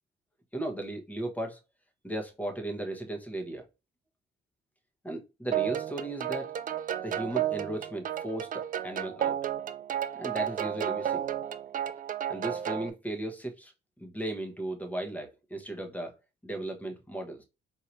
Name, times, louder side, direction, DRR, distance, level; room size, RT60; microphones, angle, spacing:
voice 1, 0.5-1.6 2.0-3.6 5.0-6.5 7.0-9.4 10.1-11.3 12.3-13.7 14.0-16.1 16.4-17.4, right 1 dB, 10° left, 1.1 m, -36 dB
sound 1, 5.5-12.9, right 10 dB, 45° right, 0.4 m, -32 dB
4.5 x 2.8 x 2.5 m
cardioid pair, 90°, 20 cm